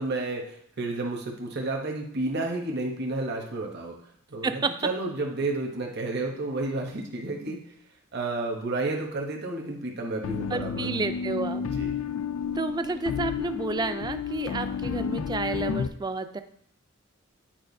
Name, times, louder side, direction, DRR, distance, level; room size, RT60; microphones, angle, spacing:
voice 1, 0.0-4.0 4.3-4.5 4.8-7.6 8.1-10.9 11.6-11.9, right 2 dB, 55° right, 1 dB, 0.9 m, -31 dB
sound 1, 10.2-15.9, left 6 dB, 85° left, 0.4 m, -31 dB
voice 2, 10.5-11.6 12.6-16.4, right 3 dB, 20° right, 9 dB, 0.3 m, -30 dB
8.7 x 4.6 x 2.7 m, 0.69 s
head